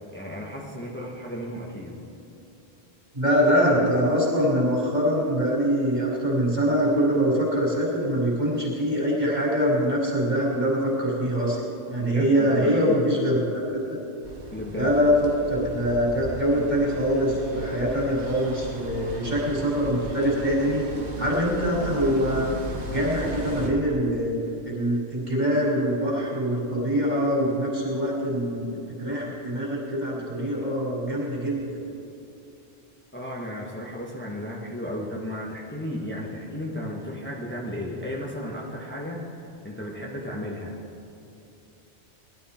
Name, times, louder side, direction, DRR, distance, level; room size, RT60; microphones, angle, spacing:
voice 1, 0.1-2.0 12.0-13.0 14.5-14.9 33.1-40.8, equal, 10° left, -4 dB, 1.4 m, -34 dB
voice 2, 3.1-11.6 11.9-14.0 14.7-20.9 21.2-22.5 22.9-24.3 24.6-28.7 29.0-31.6, equal, 40° right, -6 dB, 4.3 m, -24 dB
sound 1, 14.2-23.7, equal, 80° right, 1.8 m, -37 dB
20.0 x 12.5 x 4.4 m, 2.7 s
omnidirectional pair, 1.1 m